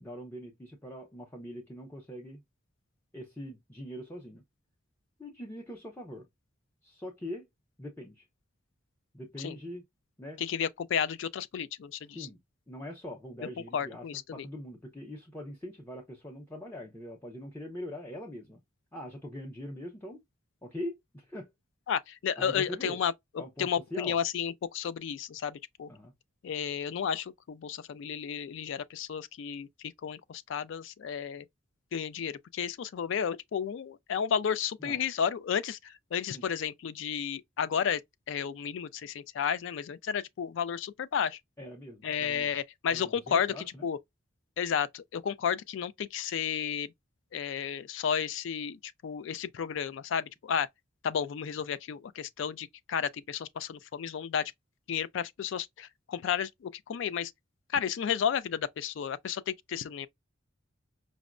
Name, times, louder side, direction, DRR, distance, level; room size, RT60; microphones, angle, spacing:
voice 1, 0.0-2.4 3.1-4.4 5.2-6.3 6.8-7.4 7.8-8.3 9.1-9.8 10.2-10.4 12.1-12.4 12.7-14.1 14.3-18.6 18.9-20.2 20.6-21.5 22.4-23.0 23.4-24.2 25.9-26.1 34.8-35.0 36.3-36.5 41.6-42.5 42.9-43.9, left 1 dB, 10° left, 0.6 m, -42 dB
voice 2, 10.4-12.3 13.7-14.5 21.9-23.1 23.6-25.9 26.4-31.5 31.9-38.0 38.3-41.4 42.0-44.0 44.6-46.9 47.3-50.7 51.0-54.5 54.9-57.3 57.7-60.1, left 7 dB, 65° left, 0.3 m, -32 dB
5.1 x 2.0 x 2.4 m
head